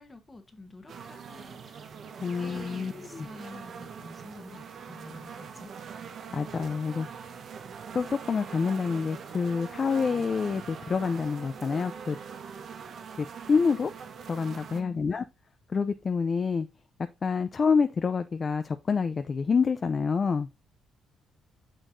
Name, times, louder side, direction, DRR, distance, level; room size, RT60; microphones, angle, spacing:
voice 1, 0.0-5.7 14.7-15.1, left 2 dB, 20° left, 1.1 m, -48 dB
sound 1, 0.9-14.8, right 6 dB, 55° right, 0.9 m, -43 dB
voice 2, 2.2-3.3 6.3-7.1 7.9-12.2 13.2-13.9 14.3-15.2 15.7-16.7 17.2-20.5, left 5 dB, 35° left, 0.4 m, -27 dB
6.5 x 6.2 x 2.6 m
cardioid pair, 130°, 0 cm